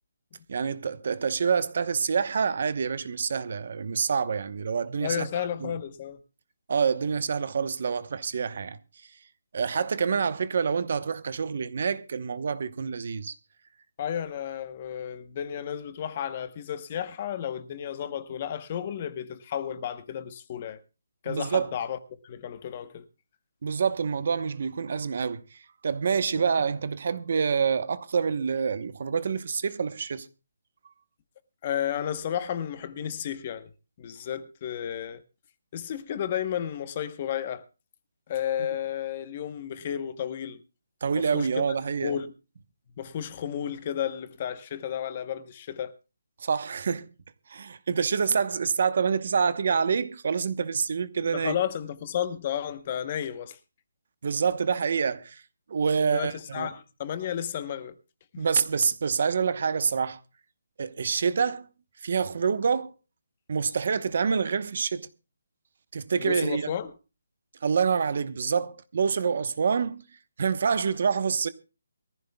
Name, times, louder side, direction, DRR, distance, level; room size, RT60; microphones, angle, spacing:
voice 1, 0.5-5.3 5.6-5.7 6.7-8.8 9.5-13.3 21.3-21.7 23.6-25.4 25.8-30.3 41.0-42.1 46.4-47.1 47.5-51.5 54.2-55.4 55.7-56.7 58.4-60.2 60.8-61.7 62.0-62.9 63.5-65.1 65.9-66.7 67.6-70.0 70.4-71.5, right 6 dB, 50° right, 0.9 m, -27 dB
voice 2, 5.0-6.2 14.0-20.8 21.2-22.0 22.2-23.0 31.6-33.7 34.0-35.2 35.7-37.6 38.3-40.6 41.2-41.7 42.0-42.3 43.0-46.0 51.3-53.6 56.0-57.9 58.3-58.5 66.2-66.9, left 9 dB, 30° left, 0.9 m, -32 dB
23.5 x 14.5 x 2.3 m
hypercardioid pair, 170°, 0 cm